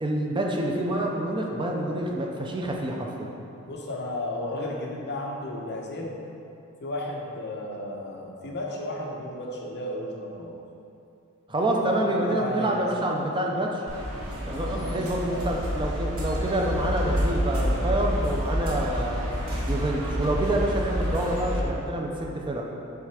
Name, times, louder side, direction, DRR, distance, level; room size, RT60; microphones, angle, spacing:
voice 1, 0.0-3.3 11.5-13.8 14.5-19.2 19.7-22.7, right 1 dB, 20° right, 0 dB, 0.5 m, -27 dB
voice 2, 3.7-6.1 6.8-10.5 12.0-13.3 14.6-15.4, left 1 dB, 55° left, -1 dB, 0.8 m, -34 dB
sound 1, 13.9-21.6, equal, 80° right, 1.2 m, -28 dB
7.3 x 3.4 x 4.8 m, 2.8 s
head